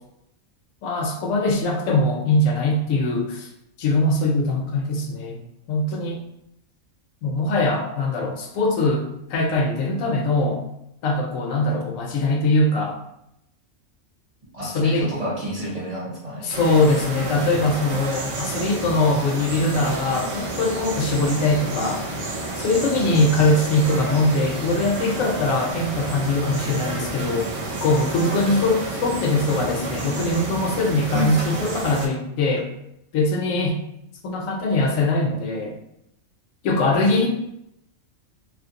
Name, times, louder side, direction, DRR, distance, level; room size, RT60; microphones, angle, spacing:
voice 1, 0.8-3.5 3.8-5.4 5.7-6.2 7.2-10.6 11.0-13.0 14.6-15.1 16.4-22.1 22.6-27.5 27.8-32.7 33.1-33.8 34.2-35.8 36.6-37.3, left 2 dB, 80° left, 2 dB, 1.0 m, -22 dB
voice 2, 14.5-16.5 31.1-31.3, right 1 dB, 35° right, -7 dB, 0.8 m, -28 dB
sound 1, 16.5-32.1, right 2 dB, 65° right, 0.8 m, -30 dB
2.8 x 2.5 x 2.7 m, 0.81 s
omnidirectional pair, 1.4 m